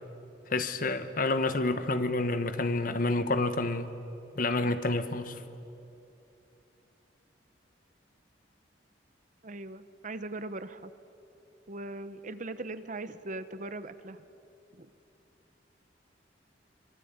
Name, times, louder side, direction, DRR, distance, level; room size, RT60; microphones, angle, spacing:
voice 1, 0.5-3.9 4.3-5.4, left 2 dB, 50° left, 10 dB, 1.2 m, -29 dB
voice 2, 9.4-10.9 11.7-14.3 14.7-14.9, right 2 dB, 45° right, 12 dB, 1.0 m, -40 dB
25.0 x 22.5 x 8.8 m, 2.9 s
head